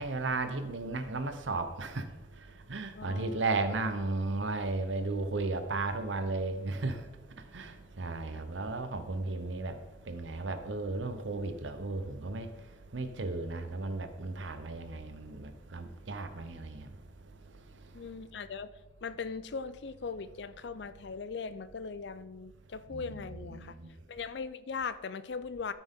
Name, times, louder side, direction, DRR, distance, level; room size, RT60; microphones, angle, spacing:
voice 1, 0.0-2.1 2.7-7.0 7.5-7.7 8.0-9.7 10.1-12.5 12.9-16.9 22.9-23.7, right 3 dB, 90° right, 9 dB, 0.9 m, -34 dB
voice 2, 2.9-3.4 17.9-18.7 19.0-23.8 24.1-25.7, left 5 dB, 70° left, 14 dB, 0.5 m, -39 dB
13.0 x 6.0 x 3.7 m, 1.2 s
head